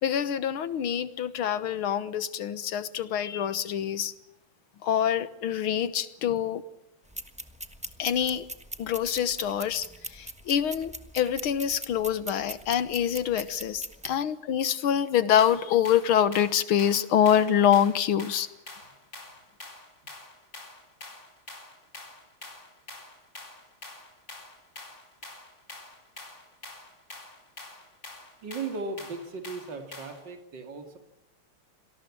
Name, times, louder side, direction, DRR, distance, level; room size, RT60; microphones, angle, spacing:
voice 1, 0.0-4.1 4.8-6.6 8.0-8.5 8.8-18.5, left 9 dB, 75° left, 2.0 m, -25 dB
sound 1, 7.1-14.1, right 1 dB, 5° right, 1.0 m, -41 dB
sound 2, 15.4-30.3, left 2 dB, 30° left, 4.2 m, -46 dB
voice 2, 28.4-31.0, right 3 dB, 55° right, 3.2 m, -37 dB
26.5 x 19.0 x 8.7 m
omnidirectional pair, 2.4 m